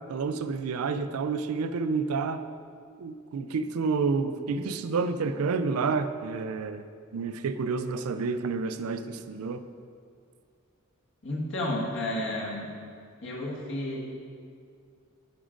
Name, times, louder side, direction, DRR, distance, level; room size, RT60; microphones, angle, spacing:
voice 1, 0.1-2.4 3.0-6.8 7.1-9.6, right 4 dB, 85° right, 11 dB, 0.4 m, -29 dB
voice 2, 11.2-12.7 13.2-14.0, left 1 dB, 60° left, -4 dB, 1.4 m, -31 dB
10.5 x 5.0 x 3.7 m, 2.3 s
head